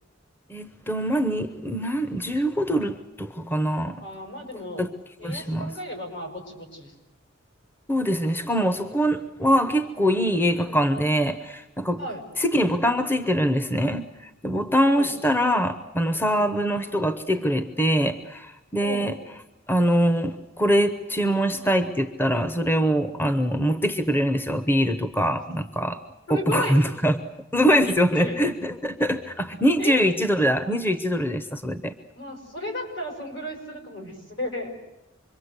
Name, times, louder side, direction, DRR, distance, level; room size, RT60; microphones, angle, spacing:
voice 1, 0.5-4.0 4.8-4.9 5.2-5.7 7.9-12.0 12.4-19.2 19.7-26.0 26.3-27.2 27.5-31.9, equal, 10° left, 9 dB, 0.8 m, -23 dB
voice 2, 4.0-4.9 5.2-6.9 12.0-12.2 14.9-15.1 16.3-16.5 18.8-19.2 26.3-26.9 27.8-28.4 29.8-30.0 32.1-34.7, left 1 dB, 65° left, 3 dB, 6.4 m, -34 dB
26.0 x 23.0 x 8.1 m, 0.95 s
head